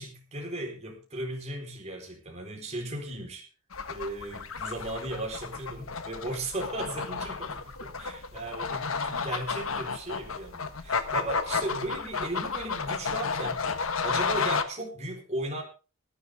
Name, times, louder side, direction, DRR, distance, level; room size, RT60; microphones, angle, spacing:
voice 1, 0.0-3.5 3.9-15.6, right 1 dB, 30° right, 0 dB, 4.2 m, -36 dB
sound 1, 3.7-14.6, left 5 dB, 70° left, 1.3 m, -32 dB
18.5 x 11.5 x 3.6 m, 0.33 s
head